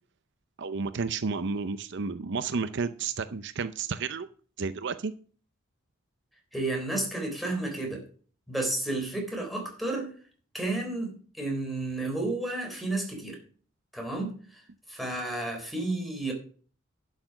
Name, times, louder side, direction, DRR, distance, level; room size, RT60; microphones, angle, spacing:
voice 1, 0.6-4.3 4.6-5.1, right 4 dB, 60° right, 0.6 m, -31 dB
voice 2, 6.5-8.0 8.5-10.1 10.5-13.4 13.9-14.6 14.9-16.3, right 2 dB, ahead, 3.6 m, -32 dB
11.5 x 6.7 x 5.8 m
head